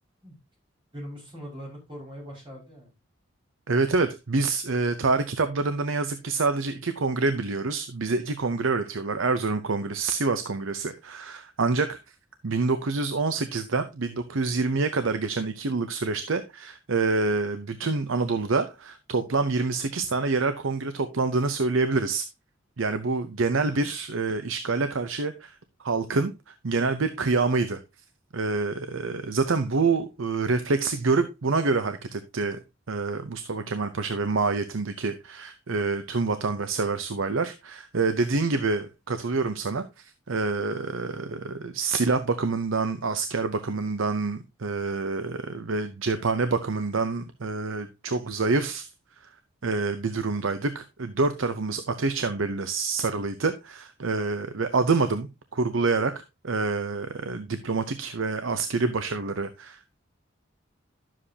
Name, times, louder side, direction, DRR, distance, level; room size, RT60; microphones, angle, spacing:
voice 1, 0.9-2.9, equal, 25° right, 5.4 m, -41 dB
voice 2, 3.7-12.0 12.4-22.3 22.8-26.3 26.6-27.8 28.3-32.6 32.9-48.9 49.6-60.0, right 3 dB, 85° right, 0.8 m, -27 dB
11.5 x 7.5 x 2.8 m
head